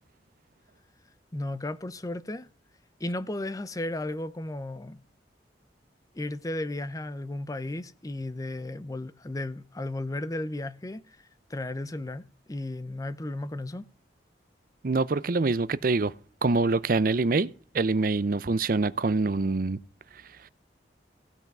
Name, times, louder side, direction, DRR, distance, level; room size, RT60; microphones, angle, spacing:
voice 1, 1.3-2.5 3.0-5.0 6.1-13.9, left 1 dB, 20° left, 0.5 m, -34 dB
voice 2, 14.8-16.1 16.4-17.5 17.7-19.8, right 3 dB, 50° right, 0.6 m, -25 dB
15.5 x 5.8 x 6.0 m
head